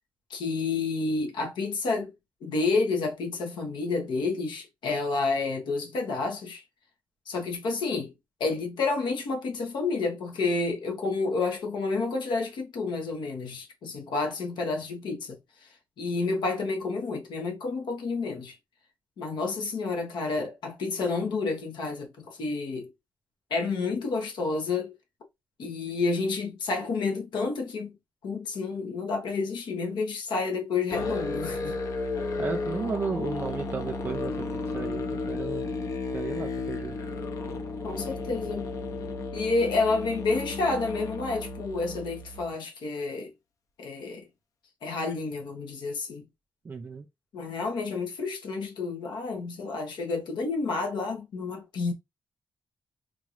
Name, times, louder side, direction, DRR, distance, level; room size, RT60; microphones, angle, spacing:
voice 1, 0.3-2.1 2.4-6.6 7.3-8.1 8.4-18.5 19.2-22.9 23.5-24.9 25.6-28.0 28.2-31.8 37.8-38.7 39.3-43.3 43.8-44.3 44.8-46.3 47.3-51.9, left 3 dB, 90° left, 1.2 m, -30 dB
Musical instrument, 30.9-42.5, left 3 dB, 45° left, 0.6 m, -33 dB
voice 2, 32.4-35.7 36.1-37.0 46.6-47.1, right 5 dB, 30° right, 0.3 m, -34 dB
3.8 x 2.5 x 3.1 m
wide cardioid pair, 165°, 8 cm